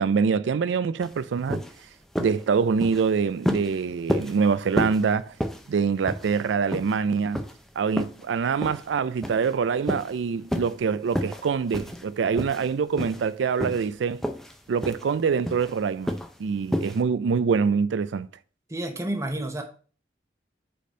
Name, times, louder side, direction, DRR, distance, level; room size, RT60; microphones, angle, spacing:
voice 1, 0.0-1.6 2.2-5.3 5.7-7.4 7.8-14.2 14.7-16.1 16.4-18.3, right 5 dB, 85° right, 0.4 m, -25 dB
sound 1, 1.0-1.1 1.5-1.8 2.1-2.4 2.8-3.1 3.4-3.7 4.1-4.4 4.8-5.0 5.4-5.7 6.1-6.4 6.7-7.0 7.3-7.5 8.0-8.2 8.6-8.9 9.2-9.5 9.9-10.1 10.5-10.7 11.1-11.5 11.7-12.0 12.4-12.7 13.0-13.3 13.6-13.9 14.2-14.5 14.8-15.0 15.5-15.7 16.1-16.3 16.7-17.0, equal, ahead, 0.5 m, -29 dB
voice 2, 18.7-19.6, right 1 dB, 15° right, 0.8 m, -30 dB
5.1 x 4.2 x 5.1 m
head